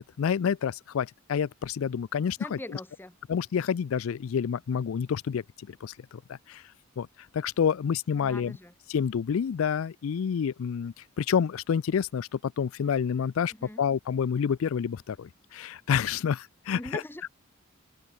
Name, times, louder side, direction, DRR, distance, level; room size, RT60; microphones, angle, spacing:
voice 1, 0.0-2.6 3.3-6.6 7.0-7.1 7.3-8.6 8.9-13.5 13.8-17.0, left 7 dB, 70° left, 0.4 m, -28 dB
voice 2, 2.4-3.2 8.1-8.7 13.5-13.8 16.8-17.2, left 1 dB, 10° left, 1.1 m, -41 dB
open air
head